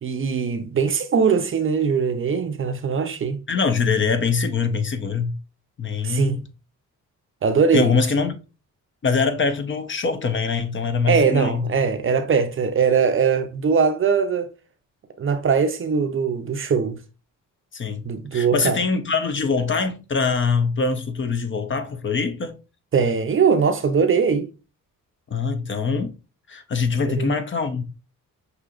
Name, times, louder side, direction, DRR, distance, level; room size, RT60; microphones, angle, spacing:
voice 1, 0.0-3.4 6.0-6.4 7.4-7.9 11.1-14.5 15.2-17.0 18.0-18.8 22.9-24.5 27.0-27.3, right 6 dB, 40° right, 0.6 m, -21 dB
voice 2, 3.5-5.4 5.8-6.4 7.7-8.3 9.0-11.7 17.7-18.0 18.3-22.6 25.3-26.1 26.5-27.8, left 5 dB, 40° left, 0.6 m, -23 dB
6.0 x 2.8 x 2.4 m
cardioid pair, 105°, 32 cm